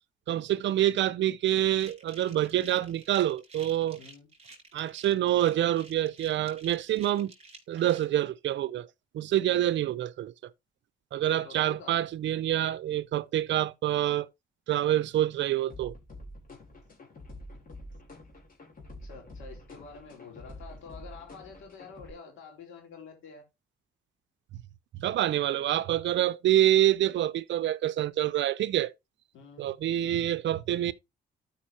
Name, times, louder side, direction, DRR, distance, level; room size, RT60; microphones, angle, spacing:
voice 1, 0.3-4.0 4.7-7.3 7.7-8.9 9.1-10.3 11.1-14.3 14.7-15.9 25.0-28.9 29.6-30.9, right 12 dB, 65° right, 0.6 m, -26 dB
sound 1, 1.7-8.0, right 3 dB, 30° right, 3.9 m, -51 dB
voice 2, 4.0-4.3 11.3-12.0 19.0-23.4 29.3-29.7, left 5 dB, 80° left, 4.1 m, -48 dB
sound 2, 15.7-22.1, left 1 dB, 45° left, 3.8 m, -47 dB
12.5 x 5.5 x 2.9 m
cardioid pair, 90°, 20 cm